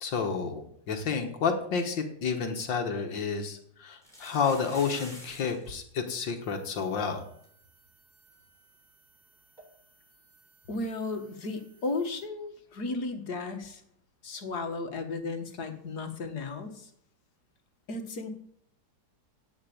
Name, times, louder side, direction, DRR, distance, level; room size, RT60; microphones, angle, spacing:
voice 1, 0.0-7.2, left 5 dB, 90° left, 4 dB, 2.3 m, -30 dB
sound 1, 3.9-5.7 5.9-6.0 6.2-6.5 7.0-7.1 7.4-7.5 9.6-9.7, equal, ahead, 7.0 m, -47 dB
sound 2, 6.4-12.2, right 4 dB, 55° right, 3.5 m, -64 dB
voice 2, 10.7-13.8 14.2-16.9 17.9-18.3, left 3 dB, 60° left, 6 dB, 2.3 m, -34 dB
17.0 x 5.8 x 8.7 m, 0.67 s
omnidirectional pair, 2.0 m